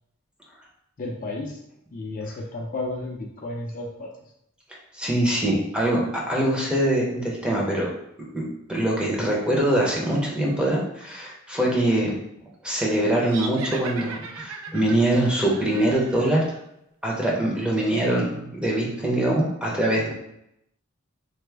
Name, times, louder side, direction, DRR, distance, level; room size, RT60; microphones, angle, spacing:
voice 1, 1.0-1.6 1.9-4.1, left 2 dB, 40° left, -1 dB, 0.5 m, -32 dB
voice 2, 4.9-7.9 8.3-8.4 8.7-12.2 12.6-16.4 17.0-20.1, right 1 dB, 5° right, -3 dB, 0.6 m, -23 dB
sound 1, 13.2-16.6, right 5 dB, 80° right, 0.4 m, -38 dB
3.3 x 2.0 x 3.2 m, 0.80 s
head